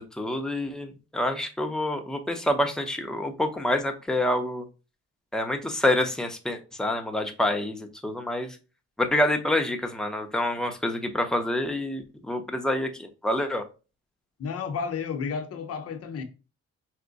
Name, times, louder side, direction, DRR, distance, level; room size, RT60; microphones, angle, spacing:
voice 1, 0.0-4.6 5.3-8.6 9.0-13.6, left 1 dB, ahead, 0.7 m, -27 dB
voice 2, 14.4-16.2, left 6 dB, 50° left, 0.9 m, -32 dB
4.7 x 2.1 x 4.0 m
cardioid pair, 90°, 30 cm